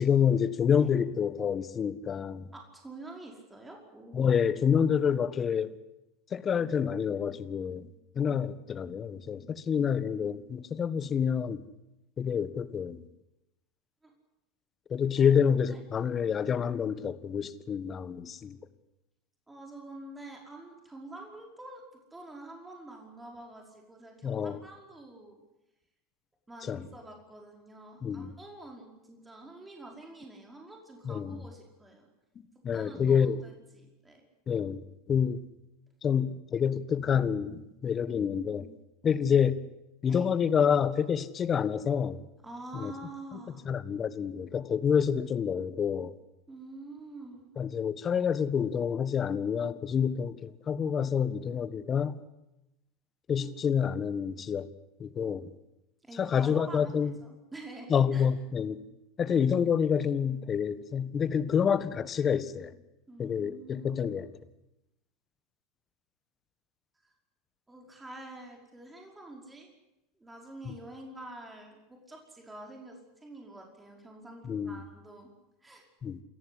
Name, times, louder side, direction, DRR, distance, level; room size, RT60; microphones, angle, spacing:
voice 1, 0.0-2.4 4.1-5.7 6.3-7.9 8.1-11.6 12.2-13.0 14.9-18.6 24.2-24.6 26.7-26.8 28.0-28.3 31.0-31.4 32.6-33.4 34.5-34.8 35.1-35.4 36.0-38.8 39.0-39.6 40.0-42.2 42.7-42.9 43.6-46.1 47.6-52.2 53.3-54.7 55.0-55.5 56.2-57.1 57.9-58.8 59.2-62.7 63.2-64.3 70.6-70.7 74.4-74.8 76.0-76.2, left 7 dB, 30° left, 14 dB, 1.5 m, -28 dB
voice 2, 2.5-4.3 14.0-14.1 15.2-15.3 15.7-15.8 19.5-21.8 22.1-25.4 26.5-32.1 32.7-34.2 40.1-40.3 42.4-43.7 46.5-47.4 53.4-53.7 56.0-58.3 63.1-64.2 67.0-67.1 67.7-69.7 70.2-75.3 75.6-75.9, right 2 dB, 10° right, 1 dB, 5.2 m, -47 dB
28.0 x 14.5 x 9.9 m, 0.95 s
hypercardioid pair, 85°, 0 cm